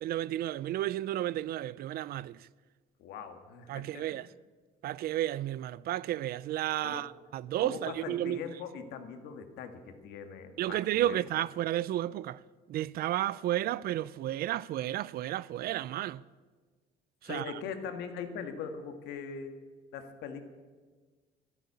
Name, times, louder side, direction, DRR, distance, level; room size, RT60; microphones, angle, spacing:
voice 1, 0.0-2.5 3.7-4.3 4.8-8.4 10.6-12.4 12.7-16.2 17.2-17.5, right 13 dB, 65° right, 0.5 m, -32 dB
voice 2, 3.0-4.3 6.8-7.1 7.6-11.2 17.2-19.6 19.9-20.4, left 6 dB, 85° left, 1.8 m, -41 dB
13.0 x 11.0 x 8.6 m
cardioid pair, 110°, 17 cm